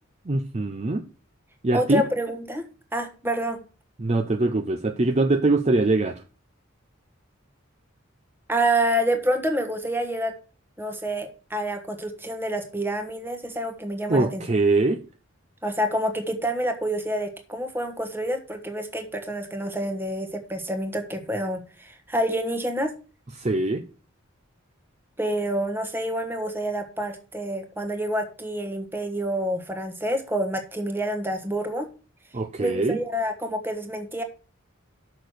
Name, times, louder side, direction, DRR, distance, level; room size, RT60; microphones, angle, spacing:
voice 1, 0.3-1.0 1.6-2.0 4.0-6.2 14.1-15.0 23.4-23.8 32.3-33.0, right 2 dB, 30° right, 0.6 m, -23 dB
voice 2, 1.7-2.6 2.9-3.6 8.5-10.3 10.8-14.4 15.6-22.9 25.2-31.9 32.6-34.2, right 1 dB, 10° right, 1.3 m, -28 dB
6.4 x 6.1 x 6.6 m
head